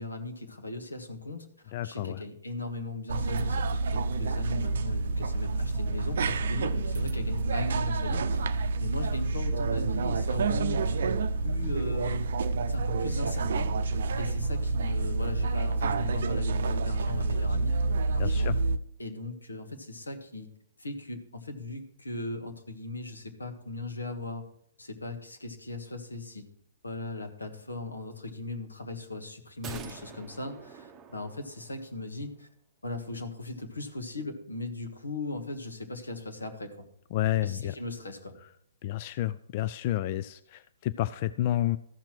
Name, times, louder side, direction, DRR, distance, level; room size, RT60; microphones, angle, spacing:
voice 1, 0.0-11.1 11.4-12.2 12.7-17.8 18.1-18.5 19.0-20.5 20.8-24.4 24.8-26.5 26.8-32.5 32.8-36.8 37.4-38.3, left 2 dB, 90° left, 6 dB, 1.6 m, -38 dB
voice 2, 1.7-2.2 18.2-18.5 37.1-37.7 38.8-41.8, left 13 dB, 45° left, 14 dB, 0.3 m, -30 dB
sound 1, 3.1-18.8, right 3 dB, 65° right, 0.6 m, -28 dB
sound 2, 29.6-32.0 32.3-32.4, right 6 dB, 20° right, 0.8 m, -46 dB
14.0 x 5.9 x 4.5 m, 0.71 s
figure-of-eight pair, 125°, 0 cm